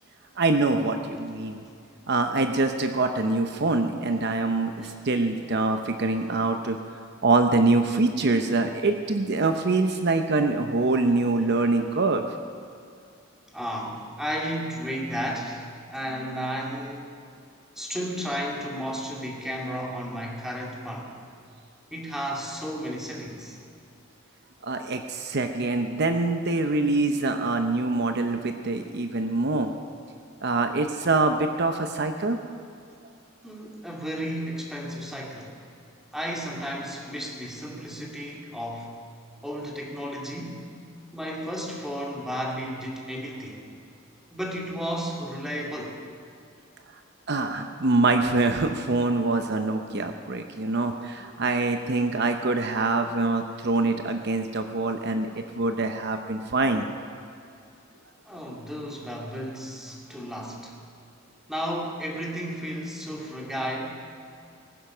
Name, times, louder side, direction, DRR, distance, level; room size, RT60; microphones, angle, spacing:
voice 1, 0.4-1.6 2.1-6.8 7.2-12.3 24.6-29.7 30.4-32.4 47.3-56.9, right 3 dB, 55° right, 6 dB, 0.8 m, -24 dB
voice 2, 4.7-5.5 6.0-6.4 11.3-11.9 13.5-17.1 17.8-21.1 21.9-23.6 33.4-35.6 36.1-39.0 39.4-40.6 41.1-43.7 44.3-46.0 58.3-60.8 61.5-64.0, equal, ahead, -2 dB, 2.3 m, -33 dB
19.5 x 10.5 x 6.1 m, 2.4 s
head